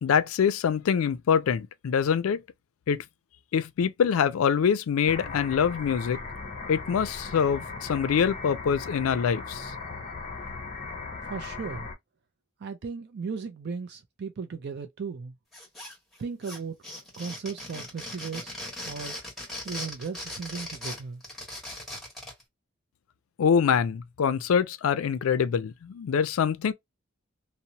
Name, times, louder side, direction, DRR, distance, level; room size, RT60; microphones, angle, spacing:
voice 1, 0.0-2.4 2.9-3.0 3.5-6.2 6.7-9.7 23.4-26.7, left 7 dB, 85° left, 0.4 m, -25 dB
sound 1, 5.1-12.0, left 4 dB, 35° left, 0.6 m, -38 dB
voice 2, 11.3-11.9 12.6-15.3 16.2-16.8 17.2-18.5 18.8-19.2 19.6-21.2, right 5 dB, 55° right, 0.4 m, -36 dB
sound 2, 15.5-16.2 16.4-22.4, left 1 dB, ahead, 1.3 m, -39 dB
2.8 x 2.0 x 2.6 m
head